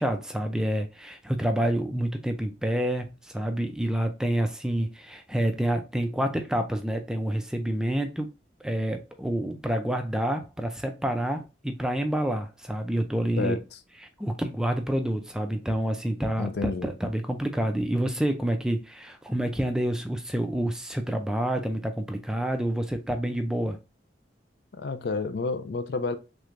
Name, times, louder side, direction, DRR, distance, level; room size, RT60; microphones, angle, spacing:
voice 1, 0.0-8.3 8.6-13.6 14.2-23.8, right 1 dB, 5° right, 0.3 m, -28 dB
voice 2, 16.4-16.9 24.7-26.2, left 4 dB, 65° left, 0.4 m, -30 dB
3.3 x 3.2 x 2.4 m
head